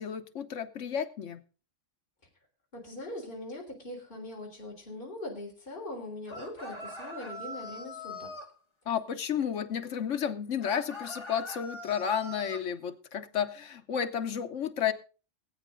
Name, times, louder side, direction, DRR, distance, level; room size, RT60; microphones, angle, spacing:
voice 1, 0.0-1.4 8.9-14.9, left 8 dB, 80° left, 1.3 m, -32 dB
voice 2, 2.7-8.3, left 1 dB, 45° left, 4.1 m, -41 dB
sound 1, 6.3-8.5 10.6-12.6, left 2 dB, 25° left, 1.8 m, -42 dB
19.0 x 9.3 x 3.8 m
omnidirectional pair, 1.2 m